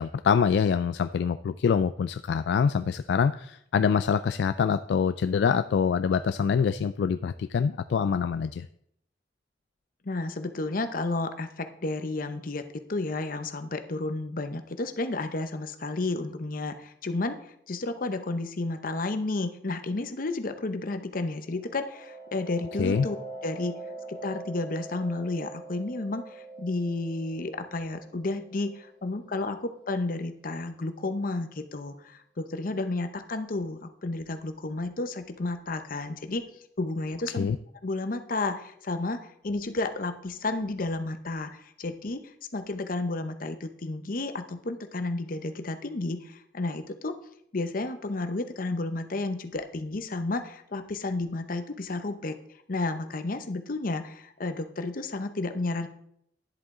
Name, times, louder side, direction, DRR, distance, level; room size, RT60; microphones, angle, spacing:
voice 1, 0.0-8.7 22.8-23.1 37.4-37.6, left 6 dB, 70° left, 11 dB, 0.3 m, -25 dB
voice 2, 10.0-17.4 17.7-23.2 23.4-23.8 24.1-36.5 36.8-37.5 37.8-42.2 42.5-47.2 47.5-52.4 52.7-55.9, left 2 dB, 50° left, 9 dB, 0.8 m, -32 dB
sound 1, 21.4-30.8, right 2 dB, 85° right, 2.7 m, -44 dB
10.5 x 7.7 x 3.7 m, 0.73 s
head